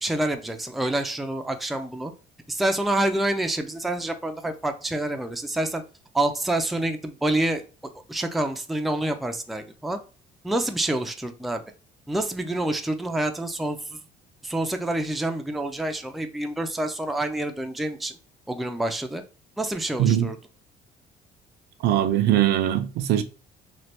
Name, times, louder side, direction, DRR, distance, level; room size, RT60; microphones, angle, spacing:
voice 1, 0.0-2.1 2.5-5.8 6.1-7.6 8.1-10.0 10.4-11.6 12.1-14.0 14.4-18.1 18.5-19.2 19.6-20.4, right 1 dB, ahead, 0.3 m, -27 dB
voice 2, 20.0-20.3 21.8-23.2, right 11 dB, 75° right, 0.5 m, -21 dB
3.1 x 2.1 x 2.8 m
cardioid pair, 110°, 17 cm